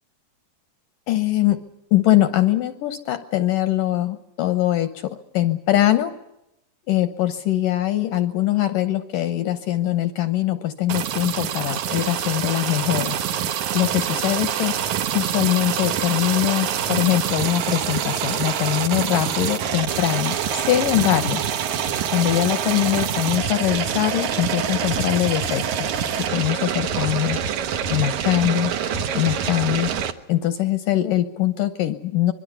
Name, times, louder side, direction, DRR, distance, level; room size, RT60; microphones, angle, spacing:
voice 1, 1.1-1.6 1.9-6.1 6.9-13.2 13.7-14.8 15.1-21.4 22.1-25.9 26.3-27.4 27.9-28.7 29.1-29.9 30.3-32.3, left 14 dB, 70° left, 10 dB, 2.2 m, -22 dB
sound 1, 10.9-30.1, right 8 dB, 65° right, 2.0 m, -25 dB
25.5 x 22.5 x 6.9 m, 0.85 s
omnidirectional pair, 4.8 m